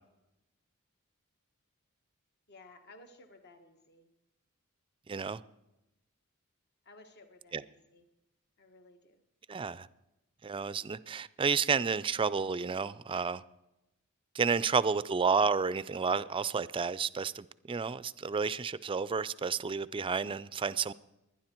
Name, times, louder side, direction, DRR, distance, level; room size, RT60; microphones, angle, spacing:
voice 1, 2.5-4.1 6.8-8.0 8.6-9.2, left 2 dB, 50° left, 1.4 m, -56 dB
voice 2, 5.1-5.4 7.5-7.6 9.5-9.9 10.4-13.4 14.3-20.9, right 5 dB, 25° right, 0.4 m, -31 dB
22.0 x 10.0 x 4.5 m
head